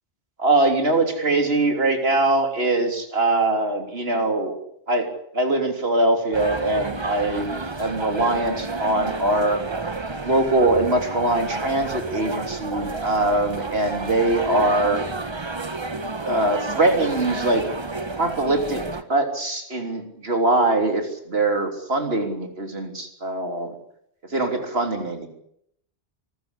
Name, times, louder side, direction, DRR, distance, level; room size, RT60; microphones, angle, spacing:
voice 1, 0.4-4.6 4.9-5.1 5.3-7.5 7.8-9.6 10.2-15.0 16.2-17.7 18.1-23.7 24.2-25.3, right 2 dB, 60° right, 4 dB, 3.5 m, -22 dB
sound 1, 6.3-19.0, right 3 dB, 25° right, 1.0 m, -31 dB
24.0 x 14.0 x 9.9 m, 0.72 s
omnidirectional pair, 1.1 m